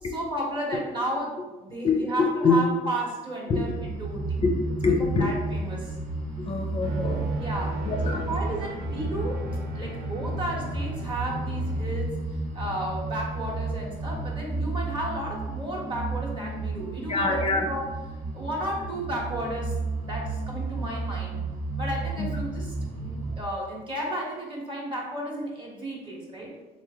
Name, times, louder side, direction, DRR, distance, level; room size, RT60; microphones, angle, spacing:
voice 1, 0.0-4.4 5.0-5.9 7.3-9.4 9.7-12.1 12.5-17.9 18.3-19.7 20.0-21.4 21.8-22.7 23.0-26.5, right 1 dB, 30° right, -3 dB, 1.4 m, -33 dB
voice 2, 1.8-2.6 3.5-3.6 4.4-5.3 6.4-7.3 7.9-8.3 17.1-17.7 22.2-22.3, left 4 dB, 35° left, 2 dB, 0.5 m, -25 dB
sound 1, 3.5-23.4, right 2 dB, 50° right, 0.9 m, -32 dB
sound 2, 6.8-11.9, right 3 dB, 80° right, 0.6 m, -36 dB
3.7 x 3.0 x 3.5 m, 1.1 s
cardioid pair, 110°, 17 cm